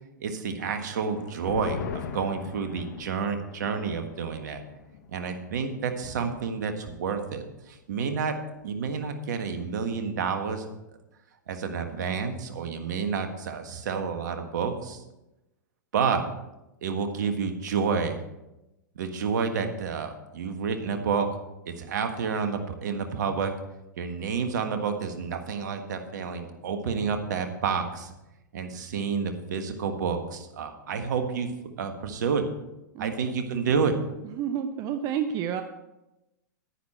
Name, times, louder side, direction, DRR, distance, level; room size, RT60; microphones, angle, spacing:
voice 1, 0.2-1.9 2.1-4.6 5.1-8.4 8.6-10.7 11.5-15.0 15.9-16.3 16.8-18.2 18.9-21.4 21.6-23.5 24.0-28.1 28.5-31.5 31.8-32.5 33.0-34.0, right 5 dB, 65° right, 6 dB, 1.5 m, -29 dB
sound 1, 0.9-7.8 8.1-8.2 8.6-9.1, left 7 dB, 60° left, 1.1 m, -42 dB
voice 2, 34.3-35.6, right 9 dB, 35° right, 8 dB, 0.7 m, -29 dB
10.5 x 10.0 x 4.4 m, 0.95 s
hypercardioid pair, 110°, 10 cm